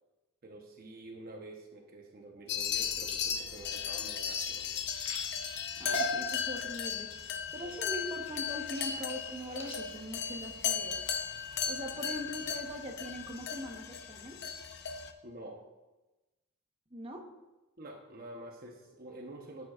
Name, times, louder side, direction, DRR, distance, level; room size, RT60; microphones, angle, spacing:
voice 1, 0.4-4.9 7.6-7.8 15.2-15.6 17.8-19.7, right 2 dB, 45° right, 1 dB, 0.9 m, -48 dB
sound 1, 2.5-15.1, left 7 dB, 50° left, 0.7 m, -36 dB
sound 2, 2.7-11.4 12.0-12.3 12.7-13.1 13.5-13.6 14.0-14.1, right 1 dB, 25° left, 1.4 m, -44 dB
voice 2, 5.8-11.0 11.7-14.4 16.9-17.2, equal, 25° right, 1 dB, 1.0 m, -42 dB
12.5 x 8.8 x 2.4 m, 1.1 s
head